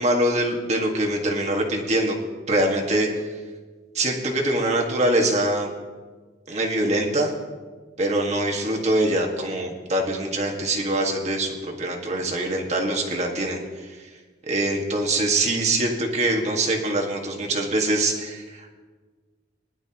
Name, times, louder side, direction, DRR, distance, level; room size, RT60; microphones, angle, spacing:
voice 1, 0.0-2.2 2.5-3.1 3.9-5.7 6.5-7.3 8.0-14.1 14.5-18.7, right 1 dB, 35° right, 1 dB, 1.7 m, -24 dB
20.5 x 11.5 x 3.0 m, 1.4 s
head